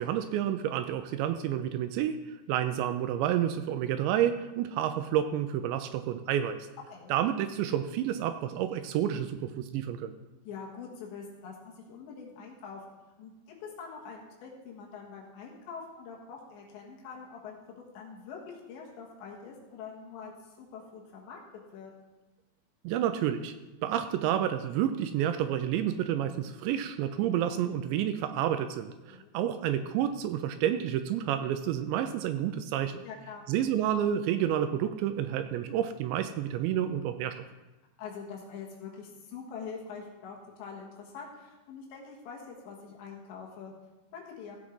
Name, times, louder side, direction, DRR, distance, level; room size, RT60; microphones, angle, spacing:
voice 1, 0.0-6.7 7.1-10.1 22.8-23.5 23.8-33.1 33.5-37.4, right 10 dB, 85° right, 9 dB, 2.6 m, -29 dB
voice 2, 10.5-21.4 21.7-21.9 29.1-29.3 33.0-33.5 38.0-43.7 44.1-44.6, left 5 dB, 75° left, -1 dB, 3.5 m, -44 dB
16.0 x 7.3 x 3.8 m, 1.1 s
omnidirectional pair, 5.5 m